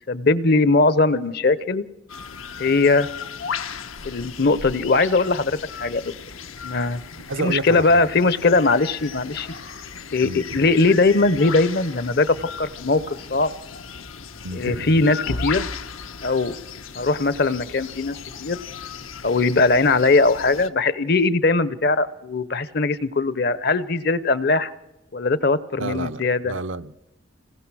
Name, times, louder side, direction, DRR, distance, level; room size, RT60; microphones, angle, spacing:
voice 1, 0.1-1.8 2.6-3.1 4.0-6.1 6.6-9.5 10.1-13.5 14.5-15.7 16.2-16.6 17.0-18.6 19.2-24.7 25.1-26.5, left 3 dB, 50° left, 17 dB, 0.8 m, -20 dB
sound 1, 2.1-20.7, left 6 dB, 90° left, 1.2 m, -36 dB
voice 2, 7.3-8.0 10.2-10.4 14.4-15.1 25.8-26.9, right 2 dB, 75° right, 11 dB, 0.8 m, -30 dB
26.5 x 19.5 x 6.2 m, 1.0 s
head